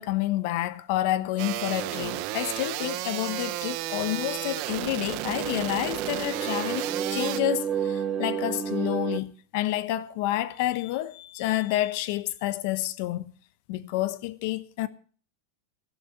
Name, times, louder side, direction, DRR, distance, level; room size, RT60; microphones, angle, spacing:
voice 1, 0.0-13.3 13.7-14.9, left 15 dB, 60° left, 1.0 m, -29 dB
sound 1, 1.4-7.4, right 16 dB, 50° right, 1.0 m, -33 dB
sound 2, 4.2-9.2, right 8 dB, 25° right, 1.7 m, -32 dB
12.5 x 11.5 x 5.6 m
supercardioid pair, 145°, 0 cm